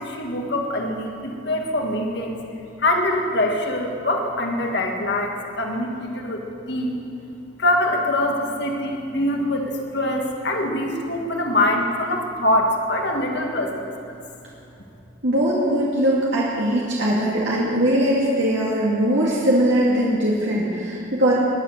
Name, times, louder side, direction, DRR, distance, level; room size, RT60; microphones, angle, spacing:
voice 1, 0.0-2.4 2.8-7.0 7.6-14.1, left 1 dB, 60° left, 1 dB, 1.9 m, -24 dB
voice 2, 15.2-21.3, right 1 dB, 70° right, -6 dB, 2.4 m, -20 dB
21.0 x 10.0 x 6.7 m, 2.6 s
head